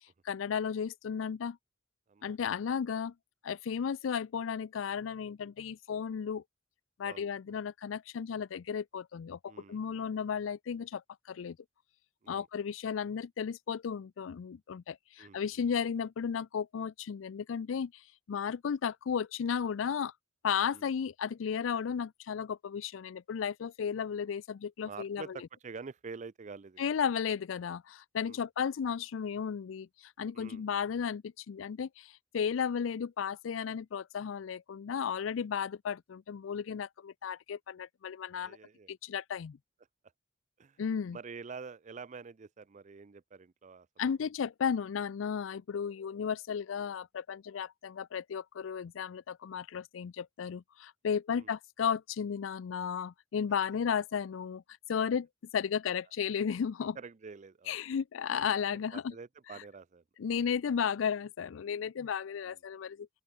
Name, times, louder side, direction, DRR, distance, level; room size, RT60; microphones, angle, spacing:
voice 1, 0.2-1.6 2.2-3.1 3.4-6.4 7.0-11.0 11.3-11.6 12.3-18.0 18.3-20.1 20.4-25.4 26.8-38.6 38.9-39.6 40.8-41.2 44.0-54.6 54.9-55.3 55.5-57.0 57.7-59.1 60.2-63.1, left 7 dB, 80° left, 0.4 m, -34 dB
voice 2, 9.5-10.1 12.2-12.5 15.2-15.7 20.7-20.9 24.8-26.9 28.2-28.4 30.3-30.6 38.3-38.9 40.6-40.8 41.1-43.9 44.2-44.3 51.3-51.5 57.0-57.8 58.7-60.0 62.4-62.6, right 5 dB, 40° right, 0.5 m, -47 dB
open air
head